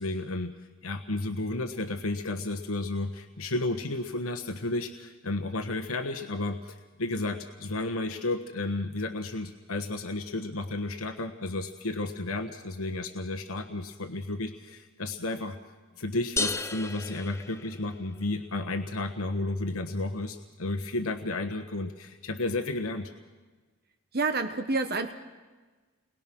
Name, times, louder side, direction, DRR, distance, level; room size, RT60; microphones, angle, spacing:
voice 1, 0.0-15.6 16.0-23.1, left 2 dB, 75° left, 5 dB, 1.3 m, -32 dB
sound 1, 16.4-18.2, left 3 dB, 15° left, 0.6 m, -33 dB
voice 2, 24.1-25.1, right 3 dB, 45° right, 8 dB, 1.1 m, -28 dB
30.0 x 21.5 x 6.2 m, 1.3 s
head